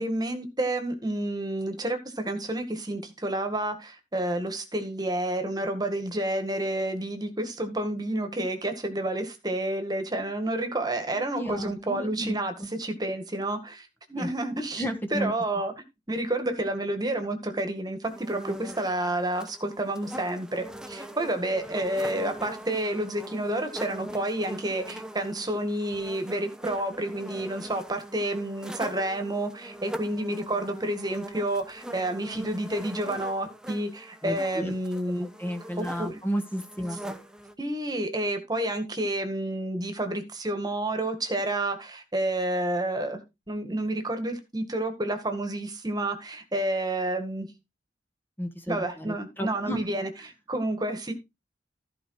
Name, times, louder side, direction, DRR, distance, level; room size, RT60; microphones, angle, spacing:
voice 1, 0.0-14.8 15.1-15.7 16.1-35.3 35.8-36.2 37.6-43.2 43.5-47.5 48.7-50.1 50.5-51.1, right 1 dB, 25° right, 1.9 m, -30 dB
voice 2, 11.1-12.3 12.6-12.7 14.2-14.3 14.8-15.3 34.2-34.7 35.2-37.0 48.4-49.9, equal, 10° left, 1.6 m, -33 dB
sound 1, 18.0-37.5, equal, 5° right, 1.0 m, -42 dB
15.0 x 5.0 x 4.8 m
head